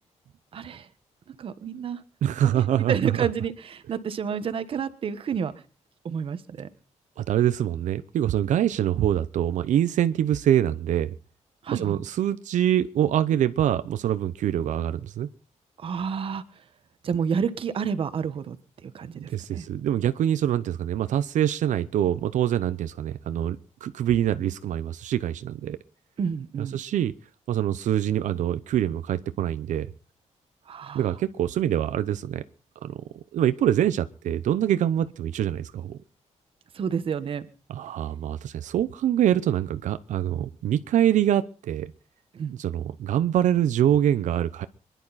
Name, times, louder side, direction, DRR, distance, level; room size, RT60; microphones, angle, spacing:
voice 1, 0.5-0.9 1.3-2.0 2.5-2.6 2.9-5.5 6.0-6.7 11.6-12.0 15.8-16.6 17.0-18.6 18.8-19.7 26.2-26.8 30.7-31.1 36.7-37.5 42.3-42.5, right 7 dB, 45° right, 12 dB, 1.3 m, -30 dB
voice 2, 2.2-3.1 7.2-11.1 11.7-15.3 19.1-25.8 26.6-27.1 27.5-29.9 30.9-32.4 32.8-33.0 33.3-36.0 37.7-41.9 42.5-44.7, right 11 dB, 85° right, 12 dB, 0.8 m, -25 dB
25.5 x 11.0 x 4.2 m, 0.37 s
wide cardioid pair, 175°, 12 cm